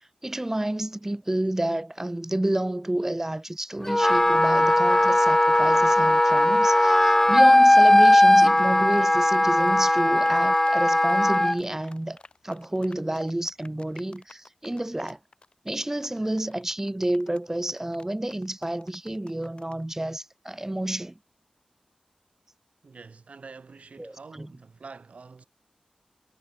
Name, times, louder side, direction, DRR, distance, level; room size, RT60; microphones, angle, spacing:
voice 1, 0.2-15.2 15.6-21.1 24.0-24.5, right 1 dB, 20° right, 1.6 m, -30 dB
Wind instrument woodwind instrument, 3.9-11.6, left 1 dB, 15° left, 0.3 m, -18 dB
sound 1, 7.0-19.8, left 3 dB, 45° left, 2.9 m, -51 dB
voice 2, 22.8-25.4, right 4 dB, 70° right, 3.8 m, -46 dB
wide cardioid pair, 65°, 2 cm